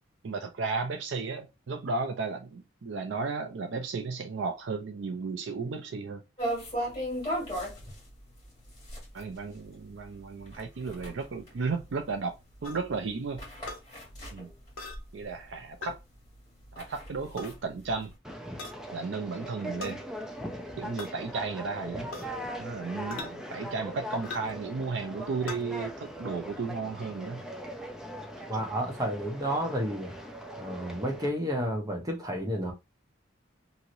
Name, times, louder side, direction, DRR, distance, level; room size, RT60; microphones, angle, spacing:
voice 1, 0.2-6.2 9.1-12.4 12.6-13.4 14.3-14.5 15.1-16.0 16.7-18.1 18.9-20.0 20.8-22.1 22.6-27.4, right 4 dB, 65° right, 0.4 m, -34 dB
sound 1, 6.4-15.5 15.9-16.0 16.4-18.1, equal, 20° left, 1.8 m, -37 dB
sound 2, 12.6-12.8 13.7-13.8 14.8-15.0 15.8-16.0 17.2-17.5 18.6-18.8 19.8-20.0 21.0-21.1 22.1-22.4 23.1-23.3 24.2-24.6 25.5-25.6, left 3 dB, 85° left, 0.7 m, -40 dB
Conversation, 18.2-31.3, equal, 5° right, 0.4 m, -40 dB
voice 2, 28.5-30.1 30.6-32.7, equal, 20° right, 0.8 m, -31 dB
3.0 x 2.8 x 2.5 m
head